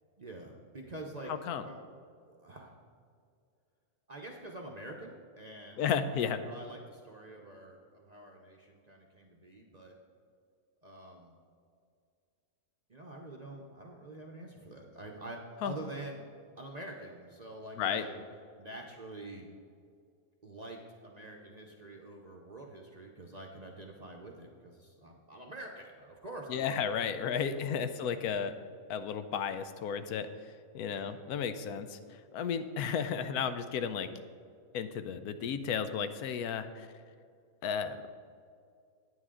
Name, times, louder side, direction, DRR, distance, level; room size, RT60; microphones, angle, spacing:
voice 1, 0.2-1.3 1.6-1.8 2.2-2.8 4.1-5.9 6.3-10.0 10.8-11.4 12.9-16.2 16.6-18.2 18.6-19.5 20.4-27.4 30.8-31.1, right 1 dB, 40° right, 0 dB, 0.7 m, -46 dB
voice 2, 1.3-1.6 5.8-6.4 15.6-15.7 17.8-18.1 26.5-28.5 28.9-30.3 30.7-32.0 32.3-34.1 34.7-36.9 37.6-38.0, left 7 dB, 85° left, 10 dB, 1.1 m, -33 dB
9.2 x 9.2 x 3.7 m, 2.3 s
omnidirectional pair, 1.5 m